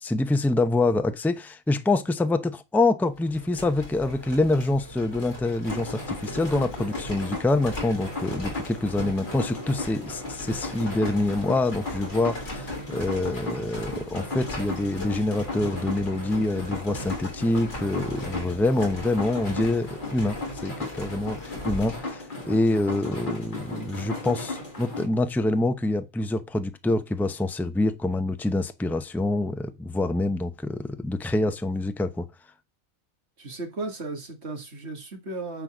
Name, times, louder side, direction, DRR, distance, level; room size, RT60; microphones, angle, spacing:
voice 1, 0.0-32.3, left 2 dB, ahead, 0.5 m, -26 dB
sound 1, 3.2-22.0, left 1 dB, 60° left, 3.3 m, -39 dB
sound 2, 5.6-25.1, left 2 dB, 35° left, 2.2 m, -36 dB
voice 2, 33.4-35.6, right 3 dB, 55° right, 2.2 m, -35 dB
9.8 x 4.1 x 6.1 m
omnidirectional pair, 1.4 m